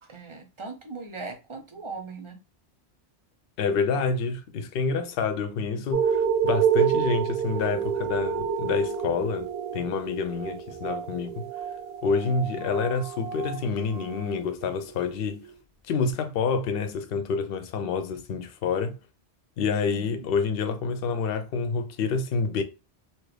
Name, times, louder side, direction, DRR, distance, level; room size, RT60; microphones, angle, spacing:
voice 1, 0.0-2.4 6.8-6.9 19.9-20.3, right 4 dB, 35° right, 0.5 m, -39 dB
voice 2, 3.6-11.5 12.0-15.4 15.9-19.0 19.6-22.6, left 5 dB, 65° left, 0.8 m, -28 dB
sound 1, 5.9-14.8 15.4-15.5, right 7 dB, 75° right, 0.9 m, -29 dB
2.9 x 2.4 x 3.2 m
omnidirectional pair, 1.1 m